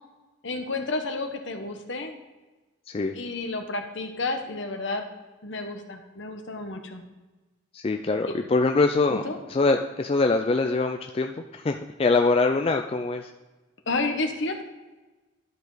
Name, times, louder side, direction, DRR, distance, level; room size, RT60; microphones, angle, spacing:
voice 1, 0.4-2.2 3.1-5.1 5.4-7.0 9.1-9.4 13.9-14.6, left 3 dB, 65° left, 5 dB, 1.0 m, -31 dB
voice 2, 7.7-9.2 9.5-13.3, left 3 dB, 30° left, 5 dB, 0.3 m, -23 dB
11.5 x 5.1 x 3.9 m, 1.2 s
head